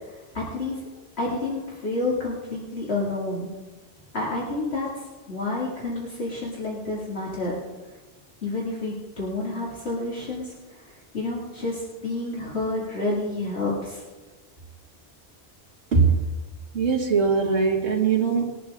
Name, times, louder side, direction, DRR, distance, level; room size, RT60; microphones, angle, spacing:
voice 1, 0.3-0.8 1.2-3.5 4.1-4.9 5.3-7.6 8.4-10.5 11.1-14.0, left 2 dB, 65° left, -6 dB, 2.5 m, -29 dB
voice 2, 15.9-16.3 16.7-18.4, right 5 dB, 70° right, -2 dB, 2.2 m, -21 dB
21.0 x 11.0 x 3.7 m, 1.2 s
omnidirectional pair, 1.2 m